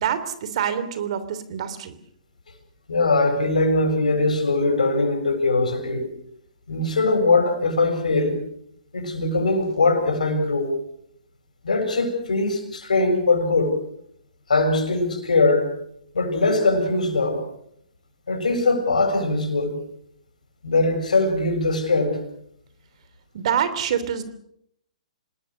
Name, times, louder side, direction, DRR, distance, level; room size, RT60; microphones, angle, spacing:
voice 1, 0.0-1.9 23.3-24.2, right 8 dB, 55° right, 12 dB, 3.1 m, -26 dB
voice 2, 2.9-6.1 6.7-8.4 8.9-10.7 11.6-13.8 14.5-15.7 16.1-17.4 18.3-19.8 20.6-22.2, left 3 dB, 80° left, 6 dB, 7.3 m, -21 dB
26.5 x 20.0 x 6.6 m, 0.74 s
hypercardioid pair, 130°, 4 cm